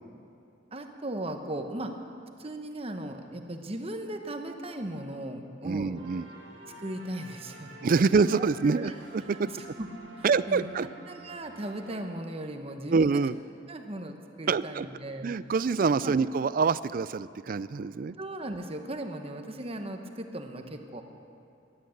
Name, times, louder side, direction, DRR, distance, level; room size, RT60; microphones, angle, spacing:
voice 1, 0.7-1.9 2.4-6.0 6.8-7.8 8.1-8.9 9.3-9.9 10.2-13.2 13.7-15.3 16.0-16.1 18.2-21.0, right 1 dB, 30° right, 5 dB, 1.1 m, -37 dB
voice 2, 5.6-6.3 7.8-9.2 10.2-10.9 12.9-13.3 14.5-14.9 15.2-18.2, right 4 dB, 45° right, 17 dB, 0.4 m, -25 dB
sound 1, 6.0-12.5, right 2 dB, 75° right, 2.2 m, -49 dB
16.0 x 11.5 x 7.9 m, 2.7 s
head